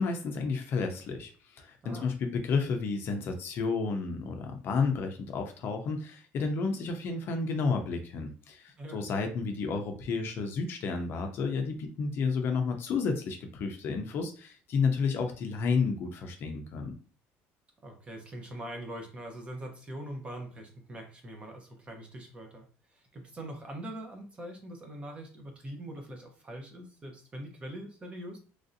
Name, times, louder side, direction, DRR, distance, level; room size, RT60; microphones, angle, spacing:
voice 1, 0.0-16.9, left 4 dB, 45° left, 4 dB, 0.5 m, -31 dB
voice 2, 17.8-22.6 22.9-28.4, right 1 dB, 20° right, 3 dB, 0.7 m, -42 dB
3.1 x 2.6 x 2.6 m, 0.40 s
cardioid pair, 150°, 5 cm